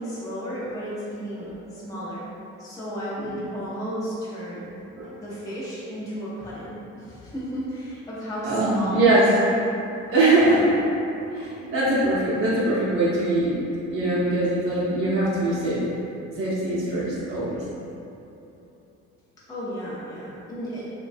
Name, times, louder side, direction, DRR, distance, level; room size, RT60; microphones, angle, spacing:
voice 1, 0.0-2.3 2.6-4.7 5.2-9.1 9.4-9.6 10.4-10.6 19.5-20.8, equal, 10° left, -9 dB, 0.5 m, -33 dB
voice 2, 8.4-9.3 10.1-10.8 11.3-13.5 13.9-15.8 16.4-17.6, right 2 dB, 45° right, -9 dB, 0.7 m, -22 dB
3.0 x 2.2 x 2.5 m, 2.8 s
cardioid pair, 90°, 30 cm